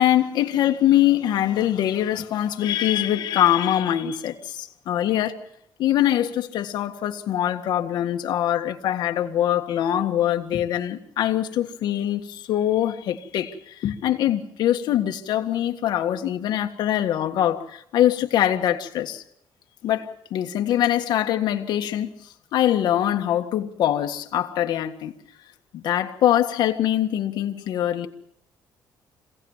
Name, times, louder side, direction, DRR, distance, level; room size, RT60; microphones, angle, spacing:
voice 1, 0.0-5.4 5.8-19.2 19.8-22.1 22.5-25.1 25.7-28.1, left 11 dB, 70° left, 1.8 m, -23 dB
26.0 x 17.0 x 7.4 m
cardioid pair, 175°, 7 cm